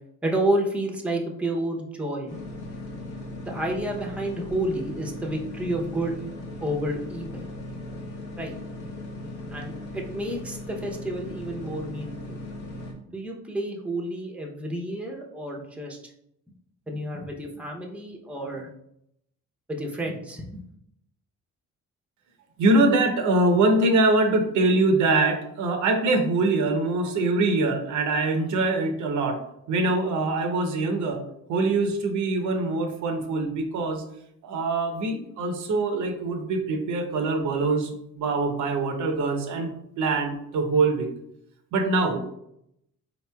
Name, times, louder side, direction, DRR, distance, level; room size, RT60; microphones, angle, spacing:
voice 1, 0.2-2.4 3.4-6.2 6.6-7.5 8.4-8.6 9.5-12.4 13.1-16.0 16.9-18.7 19.7-20.6, right 1 dB, 5° right, 1 dB, 0.6 m, -30 dB
sound 1, 2.3-12.9, left 1 dB, 85° left, 1.0 m, -38 dB
voice 2, 22.6-29.4 29.7-31.2 31.5-34.0 34.4-37.9 38.2-39.7 40.0-41.1 41.7-42.2, right 2 dB, 80° right, 5 dB, 0.7 m, -23 dB
4.1 x 2.9 x 2.2 m, 0.76 s
cardioid pair, 90°, 30 cm